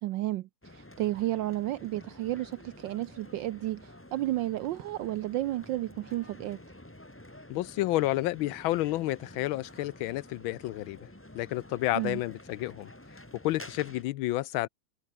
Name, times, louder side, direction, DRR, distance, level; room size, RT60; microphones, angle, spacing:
voice 1, 0.0-6.6 11.9-12.2, right 15 dB, 75° right, 1.1 m, -32 dB
sound 1, 0.6-14.0, left 1 dB, 5° left, 1.3 m, -50 dB
voice 2, 7.5-11.1 11.3-12.9 13.4-14.7, left 16 dB, 75° left, 1.4 m, -30 dB
omnidirectional pair, 2.3 m